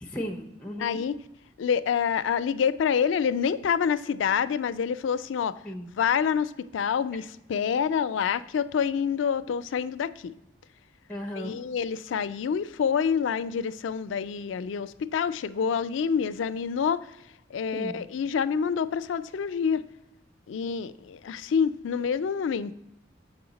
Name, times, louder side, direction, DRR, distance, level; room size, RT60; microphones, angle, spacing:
voice 1, 0.0-1.0 5.6-5.9 11.1-11.6 17.7-18.0, equal, 5° left, 2 dB, 0.5 m, -35 dB
voice 2, 0.8-1.2 1.6-5.6 5.9-10.3 11.4-17.1 17.5-19.8 20.5-22.7, left 7 dB, 85° left, 13 dB, 0.4 m, -27 dB
7.0 x 5.4 x 3.9 m, 0.88 s
head